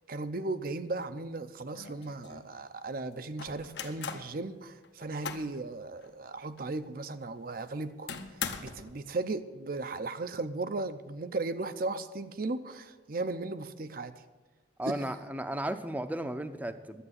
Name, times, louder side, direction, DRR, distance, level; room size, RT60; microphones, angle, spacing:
voice 1, 0.1-14.2 14.9-15.0, right 3 dB, 50° right, 11 dB, 0.6 m, -36 dB
sound 1, 1.3-1.4 1.7-2.5 3.4-4.3 4.8-5.6 6.0-6.1 6.6-6.7 8.1-8.9, left 6 dB, 65° left, 0.9 m, -40 dB
voice 2, 14.8-17.0, right 1 dB, 10° right, 10 dB, 0.6 m, -34 dB
11.0 x 8.6 x 8.0 m, 1.3 s
head